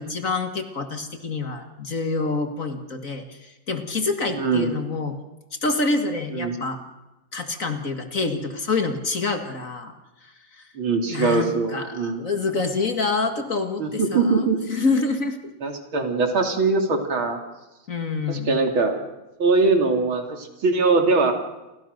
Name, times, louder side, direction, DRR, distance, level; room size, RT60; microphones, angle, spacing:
voice 1, 0.0-5.2 5.6-6.8 7.3-9.9 10.2-10.6 11.1-15.4 17.9-18.6, left 3 dB, 40° left, 7 dB, 2.2 m, -27 dB
voice 2, 4.3-4.7 6.3-6.6 10.7-12.2 13.8-14.6 15.6-17.4 18.3-19.1 19.4-21.3, right 3 dB, 75° right, 4 dB, 3.7 m, -22 dB
29.5 x 24.0 x 6.6 m, 1.0 s
omnidirectional pair, 2.3 m